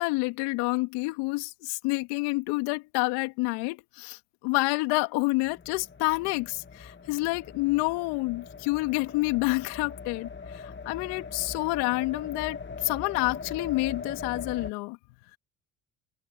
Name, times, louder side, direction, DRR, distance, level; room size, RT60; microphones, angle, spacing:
voice 1, 0.0-15.0, left 25 dB, 75° left, 2.8 m, -28 dB
sound 1, 5.5-14.7, left 5 dB, 25° left, 2.6 m, -41 dB
hypercardioid pair, 65°, 41 cm